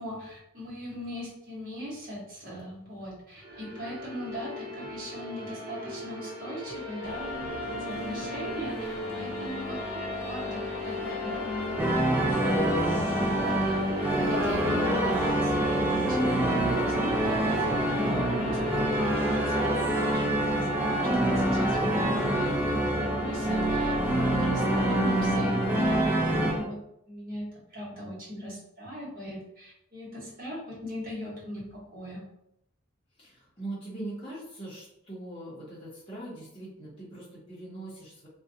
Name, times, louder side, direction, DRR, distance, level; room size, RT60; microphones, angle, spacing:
voice 1, 0.0-7.3 7.6-9.8 10.2-26.8 27.1-32.2, equal, 45° right, -7 dB, 1.2 m, -39 dB
sound 1, 3.4-20.1, left 1 dB, 75° right, 0.7 m, -38 dB
sound 2, 7.0-26.6, left 1 dB, 80° left, 0.6 m, -37 dB
sound 3, 11.8-26.5, right 1 dB, 10° right, 0.3 m, -26 dB
voice 2, 33.2-38.3, right 2 dB, 25° left, -7 dB, 0.8 m, -41 dB
2.5 x 2.2 x 2.7 m, 0.77 s
head